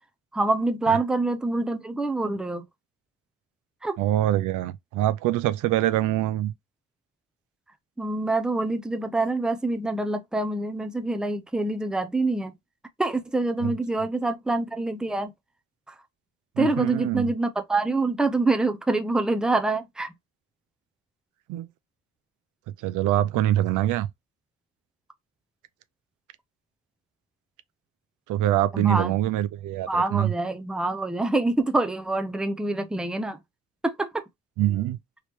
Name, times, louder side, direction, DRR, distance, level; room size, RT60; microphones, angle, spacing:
voice 1, 0.3-2.6 3.8-4.0 8.0-12.5 13.0-15.3 15.9-16.0 16.6-20.1 28.7-29.1 29.9-33.4 33.8-34.2, right 2 dB, 5° right, 0.5 m, -26 dB
voice 2, 4.0-6.5 13.6-13.7 16.6-17.3 21.5-21.7 22.8-24.1 28.3-30.3 34.6-35.0, right 13 dB, 85° right, 0.5 m, -24 dB
3.1 x 3.0 x 3.0 m
cardioid pair, 90°, 30 cm